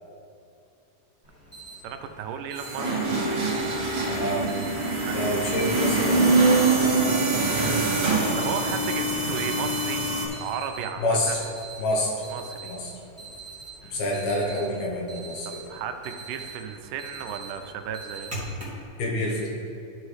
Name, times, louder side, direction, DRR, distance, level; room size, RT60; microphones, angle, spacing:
Alarm, 1.2-18.8, right 3 dB, 10° right, 0.7 m, -44 dB
voice 1, 1.8-3.7 4.8-5.2 5.6-6.2 8.4-10.1 10.4-11.4 12.3-12.7 13.8-14.0 15.5-18.4, right 7 dB, 85° right, 7 dB, 2.1 m, -35 dB
sound 1, 2.6-10.3, right 3 dB, 35° right, 1.4 m, -24 dB
voice 2, 4.1-4.5 5.1-6.3 7.6-7.9 11.0-11.4 11.8-12.1 12.6-12.9 13.9-15.7 19.0-19.5, left 1 dB, 65° left, -2 dB, 2.2 m, -28 dB
sound 2, 5.6-6.8, equal, 30° left, 0.9 m, -41 dB
13.0 x 5.4 x 3.2 m, 2.6 s
omnidirectional pair, 3.7 m